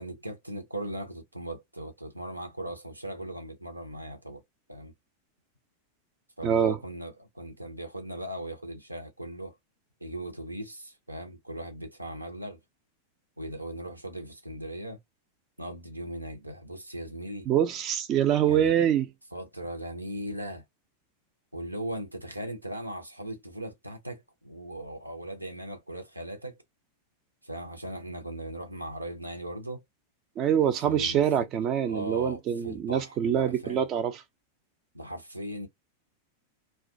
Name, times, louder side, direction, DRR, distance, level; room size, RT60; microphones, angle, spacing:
voice 1, 0.0-4.4 4.7-4.9 6.4-9.6 10.0-12.6 13.4-15.0 15.6-17.5 18.5-18.7 19.3-20.6 21.5-26.6 27.4-29.8 30.6-31.4 31.8-33.9 34.9-35.7, right 1 dB, 85° right, 0.6 m, -38 dB
voice 2, 6.4-6.8 17.5-19.1 30.4-34.2, right 9 dB, 35° right, 0.4 m, -25 dB
2.3 x 2.2 x 2.5 m
figure-of-eight pair, 90°, 0 cm